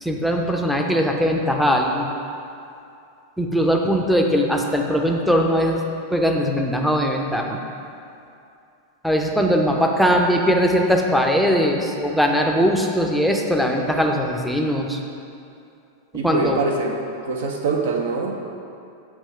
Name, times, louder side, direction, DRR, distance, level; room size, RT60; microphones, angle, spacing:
voice 1, 0.0-2.1 3.4-5.8 6.1-7.6 9.0-15.0 16.2-16.6, equal, ahead, 0 dB, 0.5 m, -20 dB
voice 2, 16.1-17.0 17.2-18.4, right 3 dB, 60° right, 1 dB, 0.6 m, -24 dB
6.3 x 3.0 x 5.5 m, 2.6 s
figure-of-eight pair, 90°, 0 cm